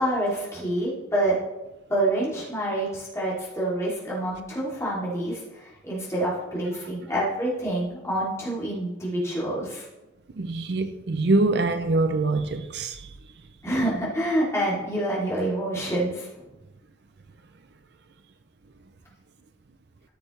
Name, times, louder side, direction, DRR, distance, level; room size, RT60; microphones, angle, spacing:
voice 1, 0.0-1.4 1.9-9.8 13.6-16.5, right 1 dB, 15° left, 2.9 m, -27 dB
voice 2, 10.3-13.2, right 2 dB, 60° right, 0.5 m, -24 dB
14.0 x 6.8 x 3.2 m
head